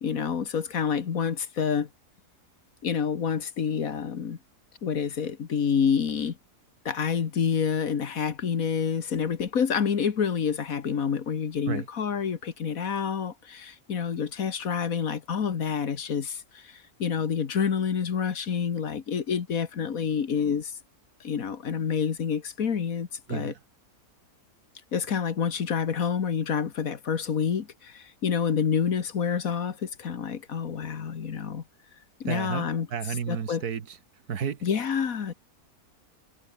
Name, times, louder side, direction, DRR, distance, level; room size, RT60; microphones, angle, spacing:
voice 1, 0.0-1.9 2.8-4.4 4.8-6.4 6.9-20.7 21.2-23.5 24.9-31.6 32.2-32.9 33.3-33.6 34.6-35.3, left 7 dB, 65° left, 1.8 m, -28 dB
voice 2, 32.3-34.0 34.3-34.6, right 7 dB, 75° right, 2.0 m, -32 dB
omnidirectional pair, 1.6 m